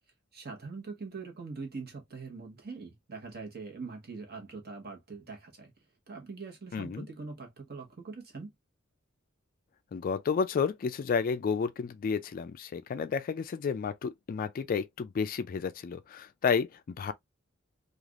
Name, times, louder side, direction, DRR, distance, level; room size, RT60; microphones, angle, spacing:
voice 1, 0.3-5.7 6.1-8.5, right 4 dB, 50° right, 1.1 m, -43 dB
voice 2, 6.7-7.1 9.9-17.1, left 6 dB, 45° left, 0.3 m, -31 dB
3.2 x 2.4 x 2.3 m
head